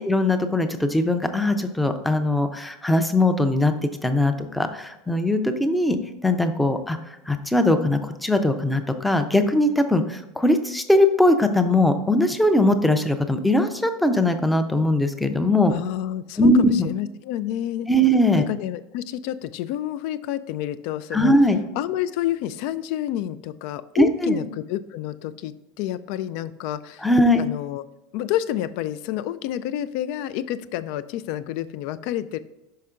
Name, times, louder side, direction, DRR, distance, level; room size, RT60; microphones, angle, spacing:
voice 1, 0.0-3.7 4.0-6.0 6.2-7.0 7.3-15.7 16.4-16.9 17.9-18.4 21.1-21.6 23.9-24.4 27.0-27.5, left 1 dB, 5° left, 7 dB, 0.5 m, -20 dB
voice 2, 15.7-17.9 18.4-21.3 21.8-27.1 27.4-27.8 28.1-32.4, left 12 dB, 60° left, 14 dB, 0.4 m, -29 dB
5.6 x 5.3 x 3.7 m, 0.97 s
supercardioid pair, 150°, 0 cm